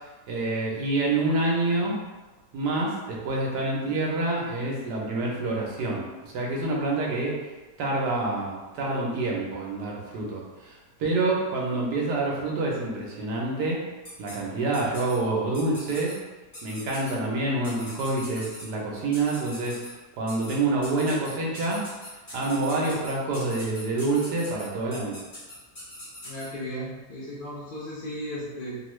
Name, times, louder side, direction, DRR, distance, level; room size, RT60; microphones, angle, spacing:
voice 1, 0.3-2.0 2.5-7.4 7.8-13.8 14.2-16.1 16.6-19.8 20.2-21.8 22.3-25.2, right 2 dB, 80° right, -3 dB, 1.3 m, -27 dB
sound 1, 14.0-14.4 14.7-15.2 15.5-16.1 16.5-17.1 17.6-18.7 19.1-19.9 20.3-20.6 20.8-26.5, left 1 dB, 35° left, 1.1 m, -42 dB
voice 2, 26.2-28.8, equal, 75° left, -7 dB, 0.4 m, -35 dB
3.2 x 2.3 x 3.1 m, 1.2 s
omnidirectional pair, 1.7 m